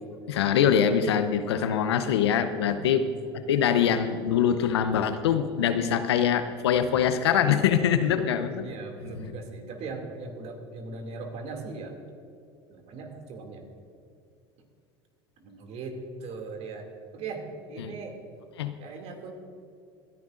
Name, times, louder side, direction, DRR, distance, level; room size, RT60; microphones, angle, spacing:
voice 1, 0.3-3.0 3.3-8.6 9.3-9.4 17.8-17.9 18.6-18.7, left 8 dB, 80° left, 10 dB, 0.7 m, -24 dB
voice 2, 2.6-3.3 7.9-8.3 8.6-12.0 12.7-13.7 15.4-16.9 17.1-18.2 18.8-19.3, right 3 dB, 55° right, 3 dB, 2.5 m, -39 dB
26.5 x 10.5 x 2.5 m, 2.4 s
hypercardioid pair, 80°, 13 cm